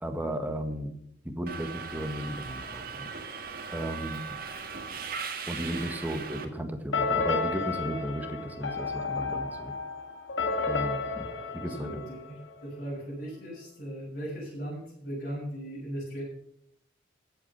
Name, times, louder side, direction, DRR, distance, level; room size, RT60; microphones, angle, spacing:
voice 1, 0.0-0.9 1.2-3.1 3.7-4.2 5.5-9.7 10.7-11.3 11.5-12.0, equal, 10° right, 5 dB, 1.7 m, -34 dB
Subway metro underground, 1.5-6.4, right 5 dB, 50° right, 1.8 m, -38 dB
sound 1, 6.9-12.7, left 4 dB, 80° left, 2.3 m, -32 dB
voice 2, 11.4-16.2, equal, 50° left, -8 dB, 7.1 m, -38 dB
15.0 x 8.5 x 5.8 m, 0.73 s
head